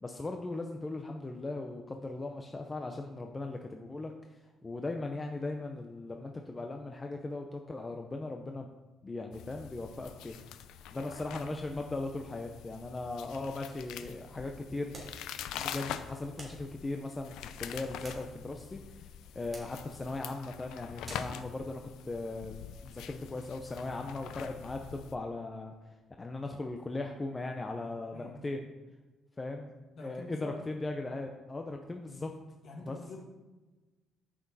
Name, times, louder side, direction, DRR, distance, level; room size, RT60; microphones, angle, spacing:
voice 1, 0.0-4.1 4.6-8.7 9.0-10.4 10.9-14.9 15.5-19.1 19.3-25.7 26.2-28.7 29.4-29.7 30.0-32.3 32.8-33.0, left 2 dB, 20° left, 3 dB, 0.7 m, -38 dB
sound 1, 9.3-25.1, left 9 dB, 90° left, 0.6 m, -45 dB
sound 2, 14.9-15.2 16.4-16.7 17.7-18.6 19.5-19.8 21.0-21.4, right 1 dB, 20° right, 3.4 m, -48 dB
voice 2, 28.1-28.6 30.0-30.6 32.6-33.2, left 2 dB, 50° left, 1 dB, 2.0 m, -45 dB
13.5 x 6.2 x 4.1 m, 1.2 s
cardioid pair, 135°, 0 cm